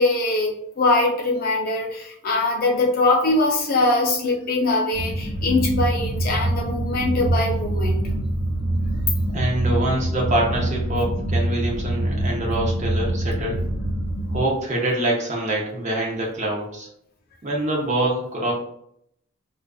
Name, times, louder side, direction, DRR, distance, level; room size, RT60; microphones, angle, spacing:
voice 1, 0.0-8.0, left 2 dB, 40° left, -1 dB, 0.5 m, -22 dB
sound 1, 4.9-14.4, right 1 dB, 75° right, 1.1 m, -25 dB
voice 2, 9.3-13.6 14.3-16.9 17.4-18.5, right 1 dB, 30° right, -2 dB, 0.5 m, -25 dB
2.4 x 2.4 x 2.3 m, 0.71 s
head